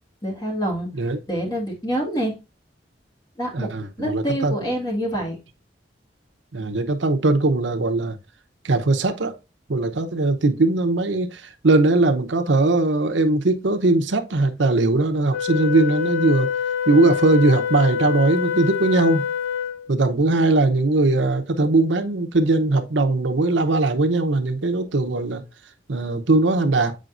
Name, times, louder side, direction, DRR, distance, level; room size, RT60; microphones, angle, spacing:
voice 1, 0.2-0.9 1.3-2.4 3.4-3.7 4.0-5.4, equal, 20° left, 1.9 m, -26 dB
voice 2, 3.5-4.7 6.5-8.2 8.6-9.3 9.7-16.5 16.9-19.2 19.9-25.4 25.9-27.0, right 2 dB, 85° right, 0.8 m, -20 dB
Wind instrument woodwind instrument, 15.3-19.9, left 8 dB, 85° left, 0.6 m, -26 dB
7.4 x 5.0 x 2.5 m
head